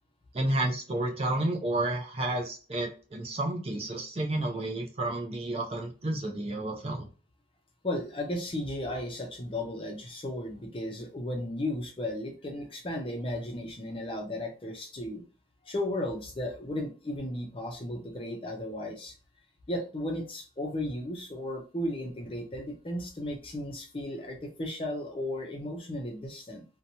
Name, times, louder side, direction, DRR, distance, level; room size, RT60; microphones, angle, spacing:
voice 1, 0.3-7.1, right 1 dB, 30° right, 1 dB, 0.5 m, -31 dB
voice 2, 7.8-15.2 15.6-19.1 19.7-26.7, left 1 dB, 30° left, 2 dB, 0.5 m, -35 dB
2.8 x 2.2 x 2.6 m, 0.35 s
head